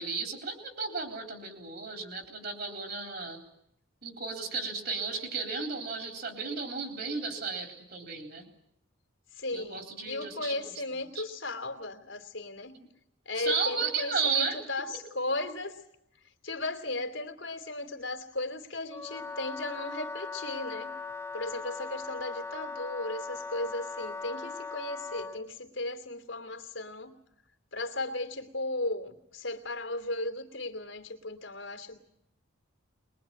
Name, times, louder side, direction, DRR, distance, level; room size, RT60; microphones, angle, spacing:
voice 1, 0.0-3.4 4.0-8.5 9.5-10.7 11.2-11.3 13.4-14.6, right 5 dB, 50° right, 5 dB, 4.0 m, -34 dB
voice 2, 9.3-12.8 13.2-15.8 16.2-20.9 21.3-27.2 27.7-32.0, left 2 dB, 75° left, 5 dB, 2.8 m, -36 dB
Wind instrument woodwind instrument, 18.9-25.4, left 4 dB, 15° left, 0.9 m, -39 dB
22.0 x 22.0 x 9.0 m, 0.78 s
head